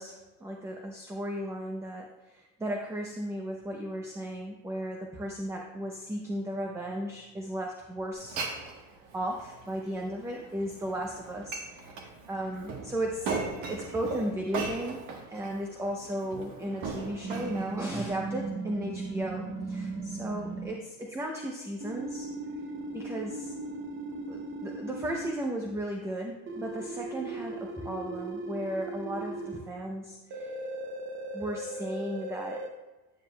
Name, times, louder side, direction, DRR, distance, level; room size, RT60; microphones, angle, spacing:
voice 1, 0.0-8.4 9.1-13.3 13.7-15.0 15.3-22.3 22.9-23.5 24.3-30.5 31.3-32.6, right 1 dB, 10° right, 1 dB, 0.5 m, -35 dB
Glass, 8.1-18.1, right 4 dB, 55° right, 1.3 m, -39 dB
sound 1, 17.2-20.7 21.8-25.3 26.5-29.6 30.3-32.7, right 2 dB, 35° right, 0.8 m, -37 dB
9.3 x 8.8 x 2.2 m, 1.2 s
cardioid pair, 140°, 35 cm